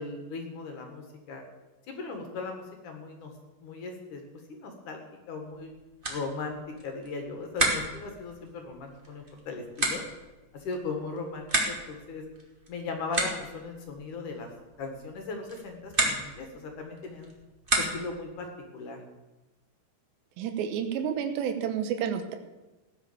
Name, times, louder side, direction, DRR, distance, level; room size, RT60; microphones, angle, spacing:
voice 1, 0.0-1.4 1.9-3.3 3.6-4.2 4.5-5.0 5.3-5.7 6.1-10.0 10.5-12.3 12.7-14.5 14.8-17.3 17.8-19.0, left 3 dB, 55° left, 4 dB, 3.0 m, -38 dB
sound 1, 5.5-18.3, right 1 dB, 15° right, 1.9 m, -34 dB
voice 2, 20.4-22.4, right 8 dB, 85° right, 6 dB, 3.3 m, -30 dB
16.5 x 10.5 x 6.9 m, 1.1 s
omnidirectional pair, 4.9 m